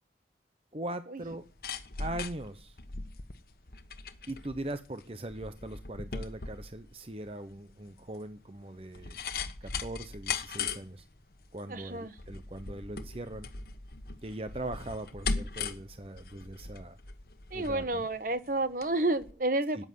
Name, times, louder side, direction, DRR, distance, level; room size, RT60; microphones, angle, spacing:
voice 1, 0.7-1.5 2.0-2.8 4.3-9.2 9.6-11.1 11.5-13.5 14.2-17.0 17.5-18.0 19.7-19.8, right 1 dB, 30° right, 9 dB, 0.8 m, -40 dB
sound 1, 1.3-18.9 19.2-19.3, left 4 dB, 55° left, 1.3 m, -39 dB
voice 2, 11.7-12.1 17.5-19.8, right 2 dB, 50° right, 12 dB, 1.1 m, -30 dB
13.5 x 9.8 x 9.4 m, 0.39 s
head